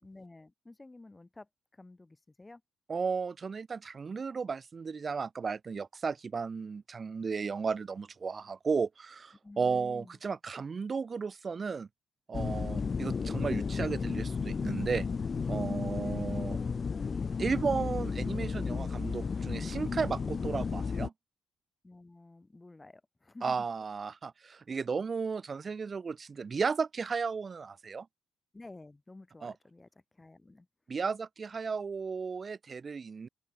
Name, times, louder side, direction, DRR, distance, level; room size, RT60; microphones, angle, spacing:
voice 1, 0.0-2.6 9.4-10.2 21.8-23.7 28.5-30.7, left 2 dB, 15° left, 5.2 m, -52 dB
voice 2, 2.9-11.9 12.3-15.1 15.5-16.6 17.4-21.1 23.4-28.1 29.4-29.5 30.9-33.3, right 5 dB, 40° right, 0.9 m, -34 dB
sound 1, 12.3-21.1, left 5 dB, 40° left, 0.6 m, -33 dB
cardioid pair, 90°, 0 cm